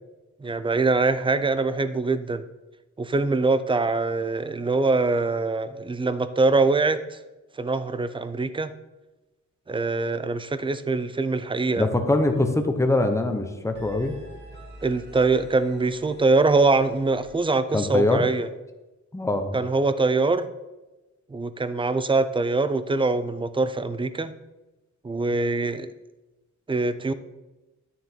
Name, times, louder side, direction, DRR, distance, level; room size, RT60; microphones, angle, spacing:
voice 1, 0.4-2.4 3.0-7.2 7.6-8.7 9.7-11.9 14.8-18.5 19.5-20.5 21.3-24.3 25.0-25.9 26.7-27.1, right 3 dB, 15° right, 13 dB, 0.4 m, -23 dB
voice 2, 11.8-14.2 17.7-18.3 19.1-19.6, left 2 dB, 10° left, 5 dB, 0.8 m, -23 dB
sound 1, 12.1-12.4 12.7-17.7, equal, 35° right, 1.7 m, -46 dB
11.5 x 6.7 x 4.4 m, 1.1 s
wide cardioid pair, 180°, 30 cm